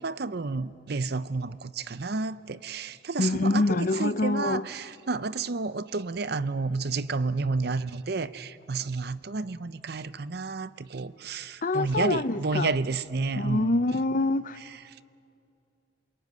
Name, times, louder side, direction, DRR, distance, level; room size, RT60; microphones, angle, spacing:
voice 1, 0.0-14.0, right 3 dB, 55° right, 0.7 m, -31 dB
voice 2, 3.2-4.7 11.6-12.7 13.4-14.6, left 2 dB, 45° left, 0.6 m, -25 dB
28.0 x 22.0 x 9.6 m
head